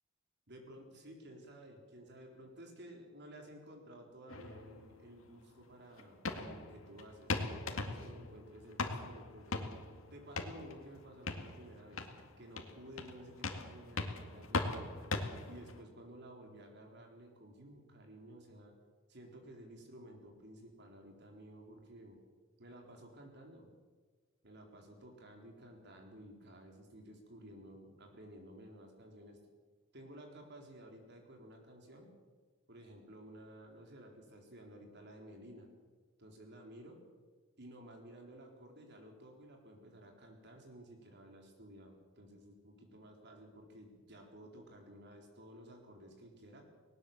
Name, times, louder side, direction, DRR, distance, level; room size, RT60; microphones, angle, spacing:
voice 1, 0.5-9.7 10.1-12.0 12.4-14.9 15.4-18.7 19.1-22.2 22.6-23.7 24.4-29.4 29.9-32.1 32.7-35.7 36.2-37.0 37.6-46.6, right 1 dB, 55° right, 2 dB, 4.3 m, -54 dB
sound 1, 4.3-15.8, left 3 dB, 85° left, 2.1 m, -41 dB
19.5 x 18.5 x 7.3 m, 1.4 s
head